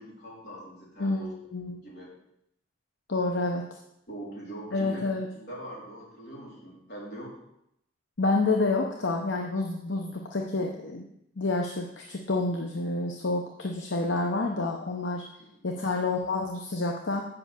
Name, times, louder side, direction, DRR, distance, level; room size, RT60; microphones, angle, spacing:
voice 1, 0.0-1.3 1.8-2.1 4.1-5.0 5.3-7.4 15.4-15.8, right 1 dB, 55° left, -5 dB, 4.1 m, -43 dB
voice 2, 1.0-1.8 3.1-3.6 4.7-5.3 8.2-11.0 11.4-15.2 15.6-17.2, left 2 dB, 75° left, 2 dB, 0.9 m, -28 dB
7.8 x 5.8 x 7.5 m, 0.78 s
head